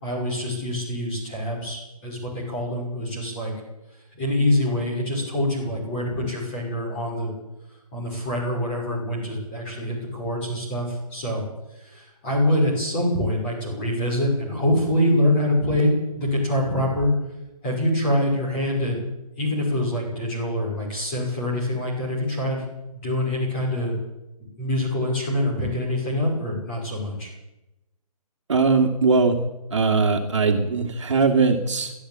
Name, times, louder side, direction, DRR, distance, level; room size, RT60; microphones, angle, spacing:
voice 1, 0.0-3.5 4.1-7.3 7.9-11.4 11.7-17.1 17.6-19.0 19.4-22.6 22.9-23.9 24.6-27.3, left 1 dB, 15° left, -2 dB, 5.6 m, -25 dB
voice 2, 28.5-29.4 29.7-31.9, right 4 dB, 50° right, 4 dB, 2.4 m, -20 dB
22.5 x 13.0 x 8.9 m, 0.95 s
hypercardioid pair, 175°, 20 cm